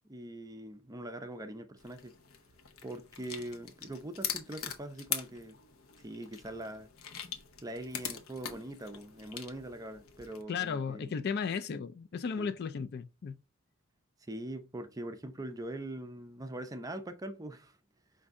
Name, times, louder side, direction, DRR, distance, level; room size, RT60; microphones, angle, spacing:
voice 1, 0.1-2.1 2.8-5.6 6.0-6.9 7.6-11.2 12.4-12.5 14.2-17.8, right 1 dB, 15° right, 0.5 m, -42 dB
sound 1, 1.8-10.4, left 8 dB, 85° left, 0.8 m, -42 dB
voice 2, 10.5-13.4, left 6 dB, 50° left, 0.3 m, -35 dB
5.2 x 2.6 x 3.5 m
head